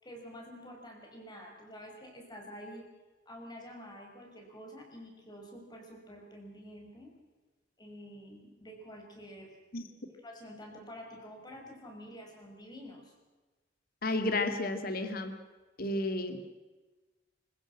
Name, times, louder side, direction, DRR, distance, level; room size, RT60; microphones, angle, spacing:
voice 1, 0.0-2.8 3.3-7.1 7.8-9.5 10.2-13.1, equal, 25° left, 1 dB, 6.0 m, -48 dB
voice 2, 14.0-15.3 15.8-16.4, left 2 dB, 55° left, 8 dB, 2.2 m, -31 dB
26.0 x 15.5 x 7.6 m, 1.2 s
head